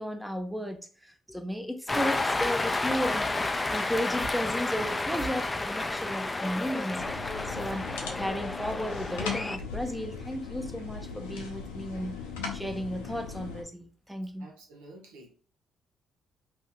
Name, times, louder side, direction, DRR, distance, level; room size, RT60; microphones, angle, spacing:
voice 1, 0.0-3.3 3.7-12.2 12.5-14.5, equal, 5° right, 0.7 m, -34 dB
Cheering, 1.9-9.6, left 2 dB, 25° left, 0.4 m, -31 dB
sound 1, 4.1-8.5, right 5 dB, 50° right, 1.4 m, -48 dB
sound 2, 7.0-13.6, left 5 dB, 90° left, 0.6 m, -39 dB
voice 2, 14.4-15.3, right 2 dB, 85° right, 1.0 m, -50 dB
2.7 x 2.6 x 3.7 m
hypercardioid pair, 50°, 0 cm